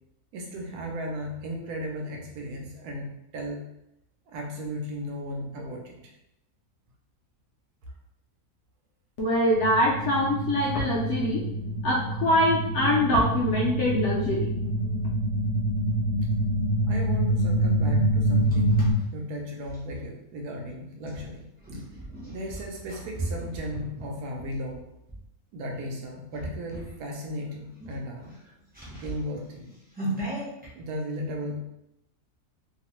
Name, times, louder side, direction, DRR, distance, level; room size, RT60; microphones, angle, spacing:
voice 1, 0.3-3.6 4.3-6.1 7.8-7.9 16.8-18.8 19.1-21.8 22.2-24.9 25.5-28.3 29.0-29.6 30.7-31.6, equal, 85° right, 0 dB, 1.1 m, -36 dB
voice 2, 9.2-11.5 11.8-14.5, left 1 dB, 70° left, -3 dB, 0.7 m, -24 dB
sound 1, 9.5-18.9, right 1 dB, 40° right, 0.7 m, -26 dB
sound 2, 18.0-20.0 21.0-25.2 25.7-26.0 26.3-27.0 27.3-27.4 27.7-30.7, right 1 dB, 15° right, 0.3 m, -38 dB
2.9 x 2.0 x 2.9 m, 0.85 s
omnidirectional pair, 1.6 m